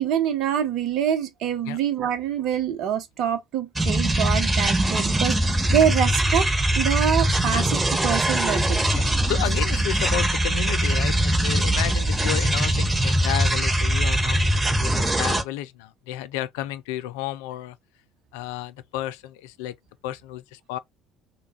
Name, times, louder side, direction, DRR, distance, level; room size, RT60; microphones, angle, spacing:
voice 1, 0.0-6.5 6.8-8.8, right 9 dB, 55° right, 0.8 m, -25 dB
sound 1, 3.8-15.4, right 1 dB, 15° right, 0.7 m, -22 dB
voice 2, 8.9-17.8 18.3-19.8 20.0-20.8, left 13 dB, 65° left, 0.3 m, -32 dB
3.3 x 2.3 x 3.2 m
figure-of-eight pair, 55°, 0 cm